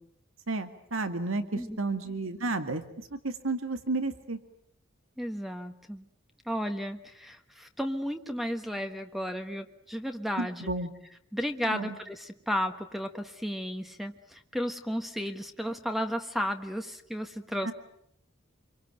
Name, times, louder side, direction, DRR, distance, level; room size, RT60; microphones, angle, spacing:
voice 1, 0.5-2.8 3.1-4.4 10.4-10.9 11.6-11.9 17.6-17.7, right 2 dB, 85° right, 9 dB, 2.1 m, -32 dB
voice 2, 5.2-6.0 6.4-10.7 11.3-17.7, equal, ahead, 6 dB, 1.4 m, -33 dB
27.0 x 24.0 x 9.1 m, 0.72 s
head